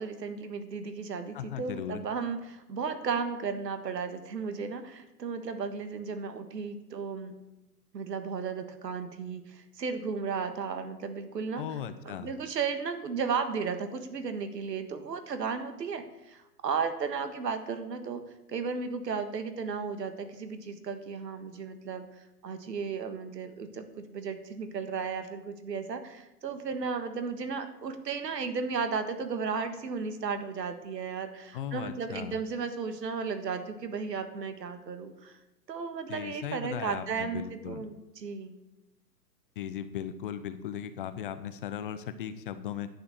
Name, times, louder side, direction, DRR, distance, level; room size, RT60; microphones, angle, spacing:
voice 1, 0.0-7.3 7.9-11.6 12.0-18.2 18.5-35.4 35.7-38.6, right 5 dB, 75° right, 9 dB, 1.7 m, -34 dB
voice 2, 1.3-2.0 11.6-12.3 31.5-32.4 36.1-37.8 39.6-42.9, left 9 dB, 35° left, 12 dB, 0.6 m, -37 dB
10.5 x 6.9 x 6.5 m, 0.96 s
hypercardioid pair, 130°, 49 cm